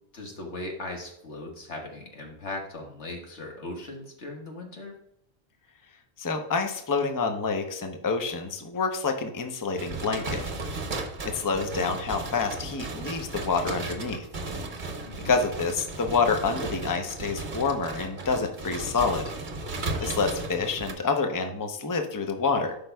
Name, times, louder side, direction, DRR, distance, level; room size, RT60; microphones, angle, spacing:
voice 1, 0.1-4.9 15.0-15.4, left 2 dB, 90° left, 1 dB, 1.8 m, -38 dB
voice 2, 6.2-10.4 11.2-14.3 15.2-19.3 20.0-22.8, left 4 dB, 20° left, 5 dB, 0.6 m, -27 dB
sound 1, 9.8-20.9, right 2 dB, 45° right, 1.0 m, -35 dB
12.0 x 5.2 x 2.3 m, 0.78 s
omnidirectional pair, 1.2 m